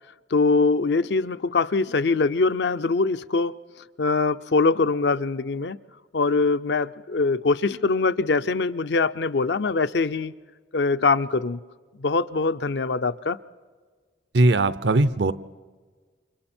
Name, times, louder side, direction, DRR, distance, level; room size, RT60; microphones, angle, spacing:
voice 1, 0.3-3.5 4.0-5.8 6.1-10.3 10.7-11.6 12.0-13.4, left 4 dB, 75° left, 12 dB, 0.6 m, -23 dB
voice 2, 14.3-15.3, right 2 dB, 80° right, 15 dB, 0.7 m, -19 dB
29.5 x 25.5 x 4.4 m, 1.5 s
head